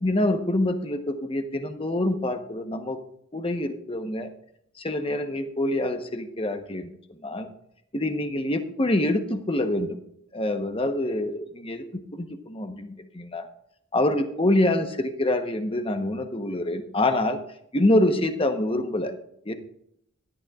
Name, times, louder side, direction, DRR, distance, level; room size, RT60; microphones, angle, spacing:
voice 1, 0.0-3.0 3.3-4.3 4.8-7.5 7.9-10.0 10.3-13.5 13.9-17.4 17.7-19.1 19.4-19.5, left 1 dB, 25° left, 7 dB, 1.0 m, -26 dB
17.0 x 12.0 x 2.4 m, 0.73 s
head